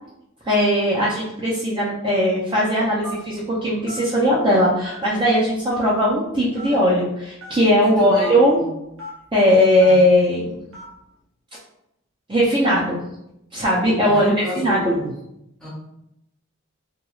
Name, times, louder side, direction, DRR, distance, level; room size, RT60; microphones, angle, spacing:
voice 1, 0.5-8.6 9.3-10.6 12.3-13.0 13.5-14.8, equal, 20° right, -7 dB, 0.4 m, -18 dB
Telephone, 3.0-3.3 3.9-4.0 4.8-5.2 5.7-5.8 6.5-6.7 7.4-7.5 8.2-8.3 9.0-9.1 9.8-10.0 10.7-10.9, left 1 dB, 75° right, 0.9 m, -35 dB
voice 2, 7.8-8.3 8.6-8.7 9.9-10.0 14.0-15.1 15.6-15.7, equal, 5° left, -7 dB, 0.8 m, -28 dB
3.0 x 2.3 x 2.3 m, 0.81 s
head